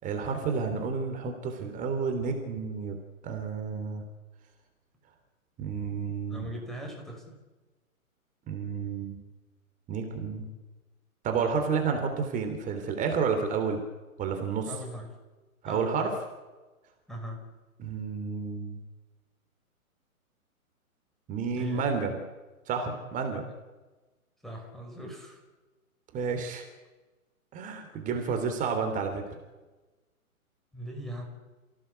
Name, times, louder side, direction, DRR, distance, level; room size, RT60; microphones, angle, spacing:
voice 1, 0.0-3.0 3.2-4.0 5.6-6.5 8.5-9.2 9.9-10.5 11.2-13.8 14.2-14.7 15.6-16.1 17.8-18.8 21.3-22.2 22.7-23.4 26.1-26.6 27.5-29.2, right 5 dB, 20° right, 5 dB, 3.3 m, -30 dB
voice 2, 6.3-7.4 14.7-15.1 15.6-16.1 17.1-17.4 21.5-21.8 23.3-23.5 24.4-25.4 30.7-31.2, equal, ahead, 2 dB, 5.2 m, -40 dB
30.0 x 17.0 x 8.2 m, 1.2 s
hypercardioid pair, 145°, 44 cm